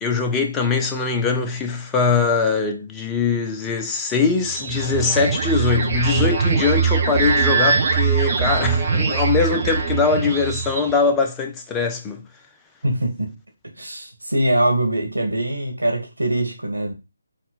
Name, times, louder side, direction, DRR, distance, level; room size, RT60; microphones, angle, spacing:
voice 1, 0.0-12.2, left 4 dB, 10° left, 0.4 m, -22 dB
sound 1, 4.4-11.1, right 5 dB, 35° right, 0.7 m, -21 dB
voice 2, 12.8-13.3 13.8-16.9, right 1 dB, 85° right, 1.5 m, -22 dB
4.0 x 2.2 x 4.0 m
figure-of-eight pair, 150°, 0 cm